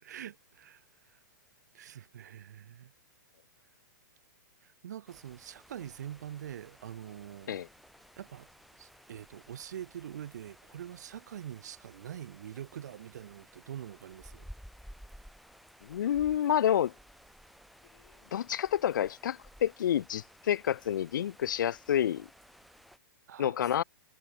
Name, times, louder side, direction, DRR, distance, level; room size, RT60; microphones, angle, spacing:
voice 1, 0.0-1.2 1.7-2.9 4.6-7.6 8.2-8.5 8.8-14.5 23.3-23.6, right 10 dB, 60° right, 1.0 m, -44 dB
sound 1, 5.1-23.0, equal, ahead, 0.9 m, -56 dB
voice 2, 15.8-16.9 18.3-22.3 23.4-23.8, left 10 dB, 75° left, 0.5 m, -29 dB
hypercardioid pair, 180°, 11 cm